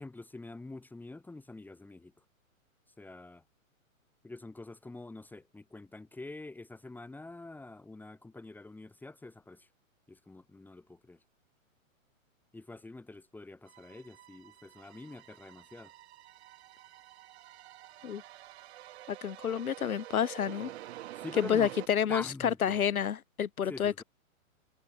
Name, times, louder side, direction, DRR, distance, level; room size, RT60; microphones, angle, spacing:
voice 1, 0.0-2.1 3.0-3.4 4.2-9.7 10.1-11.2 12.5-15.9 21.2-21.7 22.1-22.8 23.6-24.0, left 2 dB, 5° left, 4.1 m, -46 dB
sound 1, 13.7-21.9, right 14 dB, 50° right, 5.8 m, -48 dB
voice 2, 19.1-20.7 21.4-24.0, left 8 dB, 90° left, 1.8 m, -29 dB
hypercardioid pair, 150°, 42 cm